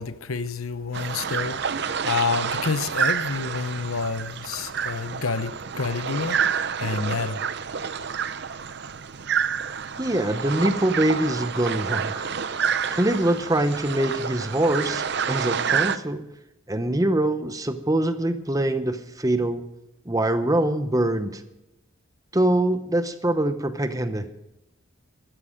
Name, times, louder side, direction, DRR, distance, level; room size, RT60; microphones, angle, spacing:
voice 1, 0.0-6.4 6.8-7.4, left 4 dB, 90° left, 0.8 m, -28 dB
sound 1, 0.9-16.0, right 7 dB, 50° right, 0.6 m, -28 dB
voice 2, 10.0-12.3 12.9-16.2 16.7-19.6 20.1-21.4 22.3-24.3, right 1 dB, 15° right, 0.8 m, -24 dB
15.0 x 13.0 x 5.2 m
head